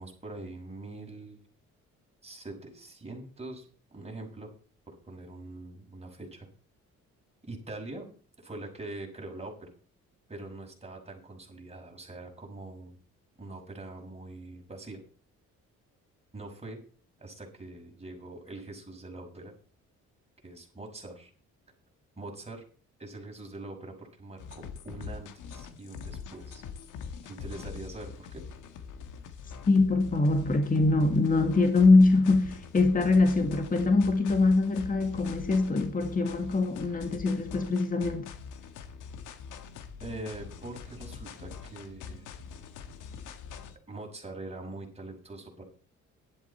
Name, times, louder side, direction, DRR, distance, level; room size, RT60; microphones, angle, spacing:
voice 1, 0.0-1.4 2.2-3.6 3.9-4.5 4.9-6.5 7.4-8.1 8.4-9.7 10.3-12.9 13.4-15.0 16.3-16.8 17.2-19.5 20.4-21.3 22.2-22.6 23.0-26.6 27.2-28.4 40.0-42.3 43.9-45.6, right 2 dB, 20° right, 6.1 m, -43 dB
sound 1, 24.4-43.8, left 6 dB, 90° left, 1.6 m, -44 dB
voice 2, 29.7-38.3, left 3 dB, 30° left, 1.7 m, -23 dB
12.0 x 11.0 x 4.3 m
cardioid pair, 90°, 30 cm